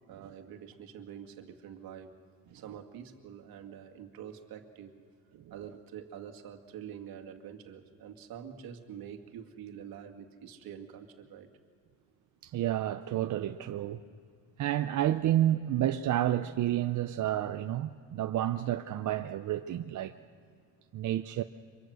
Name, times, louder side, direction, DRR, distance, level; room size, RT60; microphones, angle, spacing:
voice 1, 0.1-2.2 2.5-5.0 5.5-11.5, right 8 dB, 70° right, 2.1 m, -46 dB
voice 2, 12.4-14.0 14.6-20.1 20.9-21.4, right 12 dB, 55° right, 0.7 m, -30 dB
25.0 x 23.5 x 6.4 m
cardioid pair, 120°, 37 cm